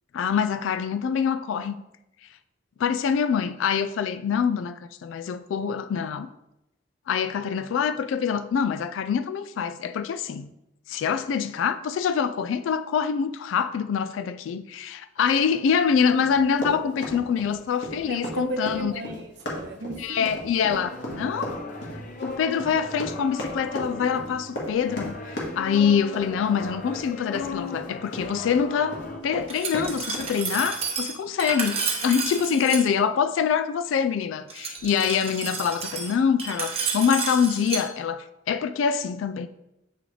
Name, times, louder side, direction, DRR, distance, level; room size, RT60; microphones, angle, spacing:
voice 1, 0.1-1.8 2.8-6.3 7.1-10.5 10.9-18.9 20.0-21.6 22.2-39.5, left 7 dB, 85° left, 0.3 m, -25 dB
Run, 16.2-28.6 28.9-30.3, left 1 dB, 65° left, 1.5 m, -35 dB
voice 2, 18.1-20.3, right 2 dB, 60° right, 0.7 m, -34 dB
sound 1, 20.7-29.2, left 3 dB, 45° left, 0.6 m, -38 dB
Glass, 29.5-32.8 34.5-37.8, right 5 dB, 30° right, 0.9 m, -31 dB
8.3 x 3.8 x 3.3 m
head